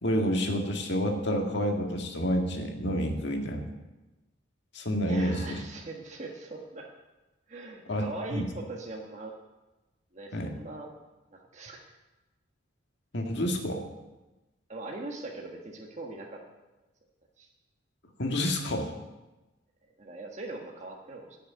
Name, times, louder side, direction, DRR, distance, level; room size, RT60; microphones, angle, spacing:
voice 1, 0.0-3.7 4.7-5.6 7.9-8.5 10.3-10.5 13.1-13.8 18.2-18.9, equal, 60° left, 3 dB, 1.9 m, -29 dB
voice 2, 5.0-6.9 7.5-9.3 10.1-10.9 11.3-11.8 14.7-16.4 17.4-17.5 20.0-21.4, right 2 dB, 35° right, 0 dB, 1.5 m, -41 dB
14.0 x 6.6 x 9.3 m, 1.1 s
head